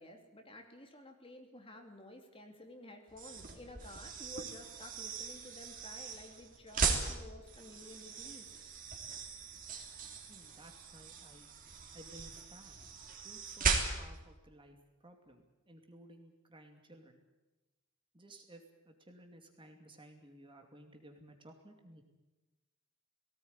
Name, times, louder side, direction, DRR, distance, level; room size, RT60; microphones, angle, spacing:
voice 1, 0.0-8.5, left 1 dB, 25° left, 4 dB, 2.9 m, -52 dB
sound 1, 3.1-14.3, right 4 dB, 40° right, 3.3 m, -39 dB
voice 2, 10.3-11.5 11.9-12.9 13.2-14.8 15.0-17.2 18.1-22.0, right 1 dB, 25° right, 4 dB, 2.6 m, -56 dB
19.0 x 18.0 x 9.8 m, 1.1 s
head